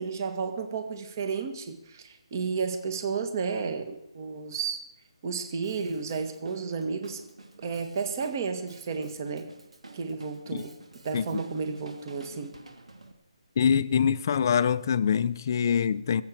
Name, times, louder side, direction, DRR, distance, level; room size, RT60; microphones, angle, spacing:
voice 1, 0.0-4.8 5.2-7.2 7.6-9.5 9.9-10.8 11.0-12.5, right 5 dB, 35° right, 1.8 m, -32 dB
Drum kit, 5.6-13.1, right 2 dB, 90° right, 2.7 m, -50 dB
voice 2, 13.6-16.2, left 7 dB, 35° left, 0.6 m, -24 dB
20.5 x 8.1 x 7.5 m
hypercardioid pair, 165°, 3 cm